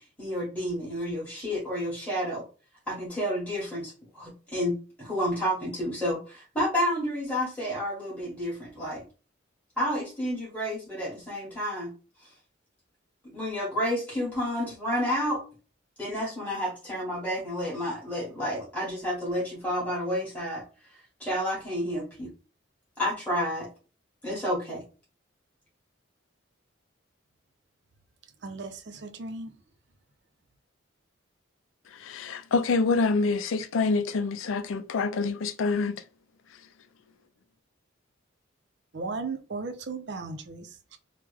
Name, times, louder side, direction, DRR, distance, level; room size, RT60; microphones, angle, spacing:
voice 1, 0.0-2.4 2.9-9.0 9.8-11.9 13.3-15.4 16.0-20.6 21.2-22.3 23.0-23.7 24.2-24.8, equal, 5° left, 1.6 m, -30 dB
voice 2, 28.4-29.6 38.9-41.0, right 3 dB, 60° right, 0.5 m, -36 dB
voice 3, 31.9-36.0, left 4 dB, 80° left, 0.4 m, -26 dB
3.4 x 2.1 x 3.3 m
head